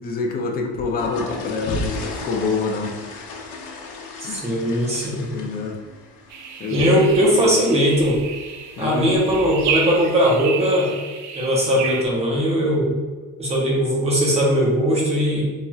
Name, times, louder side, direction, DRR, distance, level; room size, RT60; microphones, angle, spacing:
voice 1, 0.0-3.0 4.2-4.4 5.3-5.8 6.6-7.6 8.8-9.1, left 4 dB, 30° left, 1 dB, 0.4 m, -26 dB
sound 1, 0.7-9.7, left 2 dB, 70° left, 0.9 m, -35 dB
voice 2, 4.3-5.3 6.7-8.2 8.8-11.0 11.3-13.0 13.4-15.4, equal, 20° right, -3 dB, 0.9 m, -19 dB
sound 2, 6.3-12.0, right 7 dB, 60° right, 0.5 m, -31 dB
4.2 x 3.4 x 2.3 m, 1.3 s
cardioid pair, 160°, 33 cm